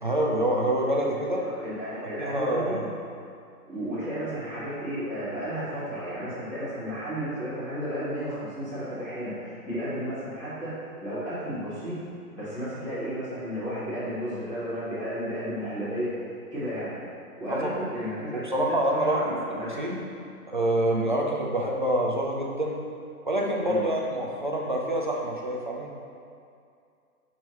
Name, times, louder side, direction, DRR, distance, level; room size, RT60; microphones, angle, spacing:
voice 1, 0.0-1.4 2.2-2.9 17.5-17.8 18.3-19.2 19.8-20.0 20.5-22.8 23.2-25.9, right 1 dB, 35° right, -2 dB, 0.6 m, -26 dB
voice 2, 1.1-2.8 3.7-10.7 11.0-12.0 12.3-16.1 16.5-17.0 17.4-19.8 20.2-20.3 23.6-23.8, equal, 5° left, -19 dB, 1.8 m, -33 dB
9.9 x 5.5 x 3.0 m, 2.4 s
hypercardioid pair, 180°, 46 cm